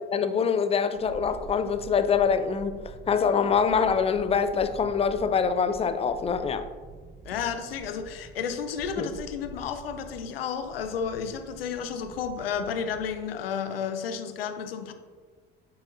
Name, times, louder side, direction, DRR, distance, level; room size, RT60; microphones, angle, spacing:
voice 1, 0.1-6.7 9.0-9.1, left 6 dB, 20° left, 11 dB, 0.5 m, -25 dB
sound 1, 0.9-13.3 13.6-13.7, right 4 dB, 10° right, 1.0 m, -47 dB
voice 2, 7.2-14.9, left 7 dB, 70° left, 9 dB, 0.7 m, -32 dB
8.7 x 5.6 x 2.7 m, 1.4 s
figure-of-eight pair, 60°, 30 cm